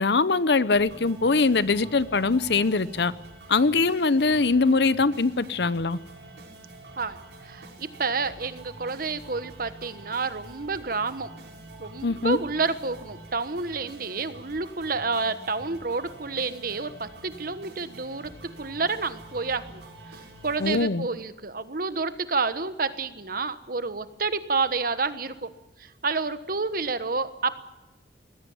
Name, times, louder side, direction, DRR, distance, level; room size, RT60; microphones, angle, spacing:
voice 1, 0.0-3.1 3.5-6.0 12.0-12.4 20.6-21.1, left 3 dB, 70° left, 16 dB, 0.8 m, -22 dB
sound 1, 0.7-20.7, right 2 dB, 85° right, 7.2 m, -46 dB
voice 2, 7.4-11.3 11.8-19.8 20.1-25.5 25.8-27.5, right 4 dB, 55° right, 12 dB, 1.3 m, -29 dB
21.0 x 16.0 x 9.3 m, 1.0 s
head